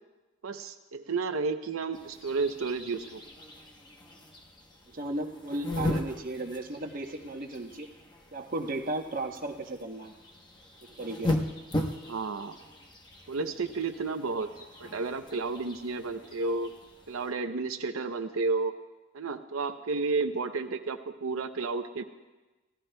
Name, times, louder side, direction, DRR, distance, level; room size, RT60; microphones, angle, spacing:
voice 1, 0.4-3.2 12.1-12.6 13.3-14.5 14.8-16.7 17.1-18.7 19.1-22.0, right 4 dB, 80° right, 6 dB, 0.6 m, -32 dB
sound 1, 1.9-17.3, left 1 dB, 20° left, 0.9 m, -38 dB
voice 2, 4.9-7.9 8.3-10.1 11.0-11.4, right 2 dB, 40° right, 3 dB, 0.9 m, -35 dB
28.5 x 15.0 x 2.2 m, 1.2 s
head